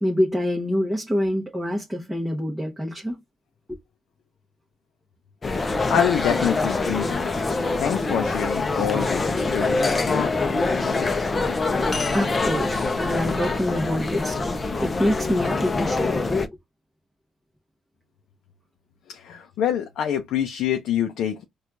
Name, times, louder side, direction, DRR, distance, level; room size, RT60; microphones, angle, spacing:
voice 1, 0.0-3.2 3.7-3.8 12.1-14.5 14.8-16.2, equal, 5° right, 0.9 m, -26 dB
sound 1, 5.4-16.5, left 3 dB, 30° left, 0.6 m, -24 dB
voice 2, 5.9-7.3 7.7-10.3 19.1-21.4, left 9 dB, 80° left, 0.5 m, -26 dB
4.3 x 2.3 x 2.5 m
cardioid pair, 90°, 0 cm